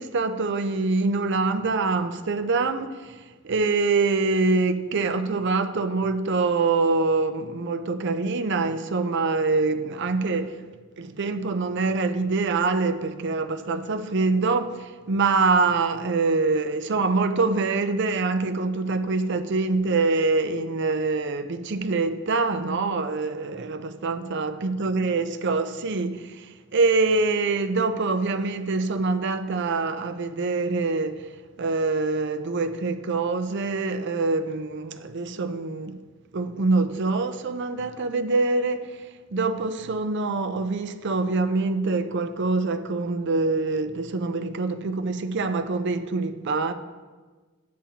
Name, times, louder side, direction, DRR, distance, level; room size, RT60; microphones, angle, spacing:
voice 1, 0.0-10.6 11.0-31.3 31.6-36.0 36.3-39.0 39.3-46.7, right 3 dB, 55° right, 0.5 m, -25 dB
10.0 x 8.5 x 2.9 m
head